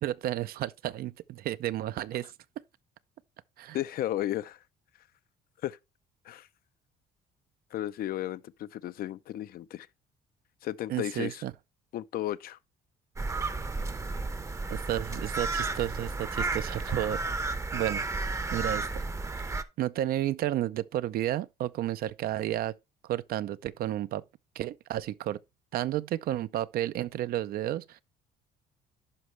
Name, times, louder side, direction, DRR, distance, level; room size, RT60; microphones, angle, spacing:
voice 1, 0.0-2.3 3.6-3.8 10.9-11.5 14.7-17.2 17.7-18.0 18.5-19.0 19.8-22.7 23.0-24.2 24.6-25.4 25.7-28.0, right 13 dB, 65° right, 0.5 m, -32 dB
voice 2, 3.7-4.6 5.6-5.8 6.3-6.5 7.7-9.9 10.6-11.4 11.9-12.6, left 13 dB, 60° left, 0.5 m, -34 dB
sound 1, 13.2-19.6, right 3 dB, 15° right, 0.7 m, -32 dB
11.0 x 5.3 x 3.2 m
cardioid pair, 110°, 17 cm